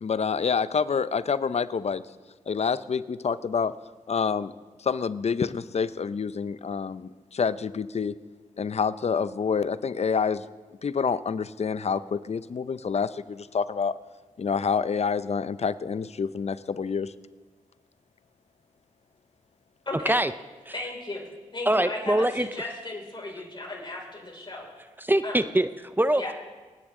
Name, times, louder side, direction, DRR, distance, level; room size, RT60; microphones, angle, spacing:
voice 1, 0.0-2.0 2.5-3.8 4.1-4.5 4.8-8.1 8.6-10.5 10.8-14.0 14.4-17.1, left 6 dB, 50° left, 15 dB, 0.6 m, -27 dB
voice 2, 19.9-20.2 20.7-21.3 21.5-24.7 25.2-25.5 26.1-26.3, left 2 dB, 35° left, -2 dB, 5.4 m, -35 dB
voice 3, 21.7-22.5 25.0-26.3, right 1 dB, 15° right, 13 dB, 0.6 m, -23 dB
28.0 x 9.9 x 3.8 m, 1.4 s
cardioid pair, 55°, 14 cm